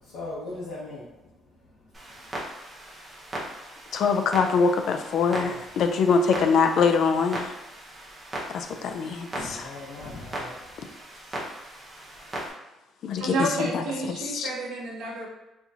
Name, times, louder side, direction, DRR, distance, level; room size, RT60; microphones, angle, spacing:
voice 1, 0.0-1.1 5.3-5.6 9.4-10.5, left 2 dB, 85° left, -9 dB, 1.1 m, -38 dB
Clock, 1.9-12.5, right 1 dB, 15° right, 0.7 m, -38 dB
voice 2, 3.9-7.6 8.5-9.7 13.0-14.5, left 5 dB, 50° left, 7 dB, 0.3 m, -24 dB
voice 3, 13.2-15.3, right 2 dB, 75° right, -4 dB, 1.0 m, -30 dB
4.3 x 2.7 x 2.4 m, 0.95 s
cardioid pair, 175°, 0 cm